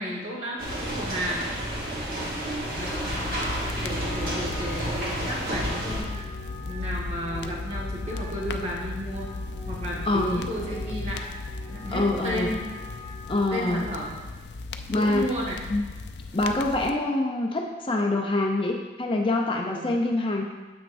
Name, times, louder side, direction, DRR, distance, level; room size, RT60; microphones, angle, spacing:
voice 1, 0.0-1.5 2.7-3.3 3.8-6.1 6.6-9.3 9.7-11.2 11.7-12.6 13.5-14.2 14.9-15.6 19.6-20.0, equal, 35° right, -4 dB, 1.6 m, -33 dB
sound 1, 0.6-6.0, right 1 dB, 55° right, 1.9 m, -31 dB
Wind instrument woodwind instrument, 2.4-14.1, left 2 dB, 45° left, 1.0 m, -45 dB
sound 2, 2.8-16.9, left 3 dB, 80° left, 0.5 m, -36 dB
voice 2, 10.0-10.5 11.9-12.5 13.3-13.8 14.9-15.3 15.7-15.8 16.3-20.4, left 2 dB, 30° left, 1 dB, 0.5 m, -25 dB
9.3 x 7.8 x 2.6 m, 1.3 s
head